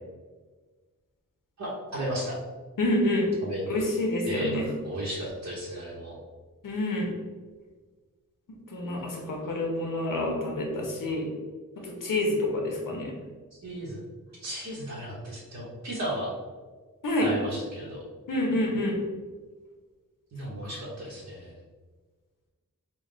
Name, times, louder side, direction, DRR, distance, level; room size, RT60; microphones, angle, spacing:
voice 1, 1.6-2.4 3.4-3.6 4.2-4.5 4.8-6.2 13.6-14.0 14.4-16.3 17.2-18.0 20.3-21.5, right 1 dB, 55° right, -5 dB, 1.0 m, -34 dB
voice 2, 2.8-3.3 3.7-4.7 6.6-7.1 8.7-11.3 11.8-13.1 17.0-17.3 18.3-19.0 20.6-20.7, left 1 dB, 70° left, 0 dB, 0.9 m, -27 dB
3.8 x 2.2 x 3.8 m, 1.4 s
cardioid pair, 75°, 33 cm